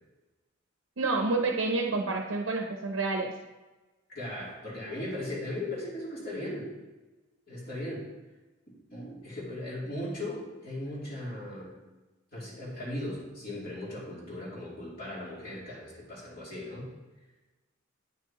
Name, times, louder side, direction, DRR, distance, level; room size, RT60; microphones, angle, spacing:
voice 1, 1.0-3.3, right 3 dB, 90° right, 3 dB, 0.6 m, -28 dB
voice 2, 4.1-6.7 7.5-8.1 8.9-11.7 12.3-16.9, left 1 dB, 50° left, -6 dB, 2.7 m, -37 dB
9.4 x 6.3 x 2.9 m, 1.2 s
head